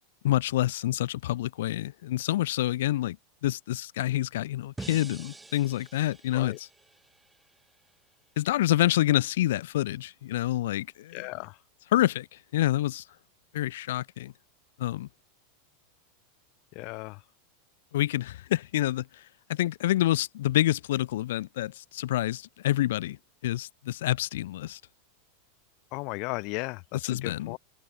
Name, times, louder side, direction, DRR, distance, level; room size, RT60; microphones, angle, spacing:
voice 1, 0.2-3.2 3.4-6.7 8.4-11.2 11.9-12.3 12.5-13.0 13.5-14.3 14.8-15.1 17.9-19.2 19.5-24.8 27.0-27.6, left 14 dB, 70° left, 2.0 m, -27 dB
sound 1, 4.8-7.9, right 3 dB, 5° right, 4.0 m, -46 dB
voice 2, 11.1-11.6 16.7-17.2 25.9-27.6, left 29 dB, 35° left, 5.5 m, -36 dB
supercardioid pair, 175°, 0 cm